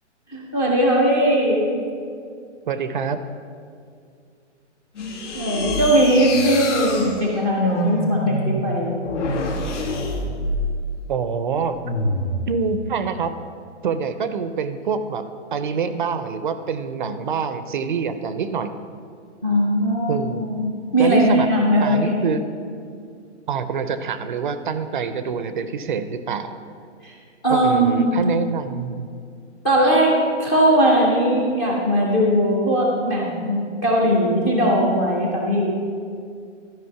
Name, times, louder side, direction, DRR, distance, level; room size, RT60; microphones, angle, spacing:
voice 1, 0.3-1.7 5.1-9.0 19.4-22.2 27.0-27.2 27.4-28.2 29.6-35.7, equal, 10° left, -2 dB, 0.4 m, -19 dB
voice 2, 2.7-3.2 11.1-11.8 12.5-13.3 13.8-15.3 15.5-18.7 20.1-20.5 21.0-21.5 21.8-22.4 23.5-26.6 27.5-29.1, right 6 dB, 45° right, 11 dB, 0.5 m, -25 dB
sound 1, 5.0-10.9 11.8-12.4, left 1 dB, 80° left, 1.7 m, -26 dB
12.5 x 5.2 x 5.7 m, 2.3 s
hypercardioid pair, 155°, 36 cm